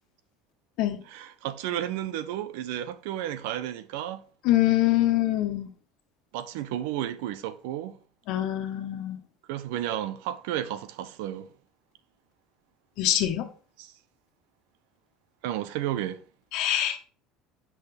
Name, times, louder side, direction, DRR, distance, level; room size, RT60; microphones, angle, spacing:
voice 1, 1.1-4.2 6.3-8.0 9.5-11.5 13.8-13.9 15.4-16.2, right 12 dB, 85° right, 0.9 m, -32 dB
voice 2, 4.4-5.7 8.3-9.2 13.0-13.5 16.5-17.0, left 13 dB, 60° left, 1.4 m, -24 dB
8.3 x 6.0 x 3.4 m
cardioid pair, 165°, 0 cm